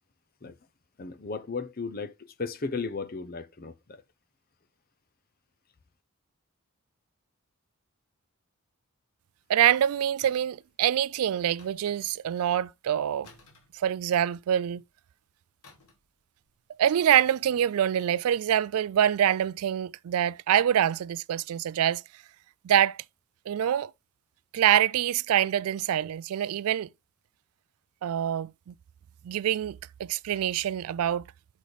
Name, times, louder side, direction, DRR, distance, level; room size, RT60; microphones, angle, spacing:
voice 1, 1.0-4.0, left 4 dB, 40° left, 0.7 m, -35 dB
voice 2, 9.5-13.3 13.7-14.8 16.8-22.0 22.6-23.0 23.5-23.9 24.5-26.9 28.0-28.7 29.2-31.2, right 10 dB, 80° right, 0.3 m, -25 dB
sound 1, 10.2-10.6 11.6-12.4 13.2-14.4 15.6-16.1 16.4-16.6, left 3 dB, 85° left, 1.9 m, -56 dB
6.2 x 5.0 x 4.0 m
head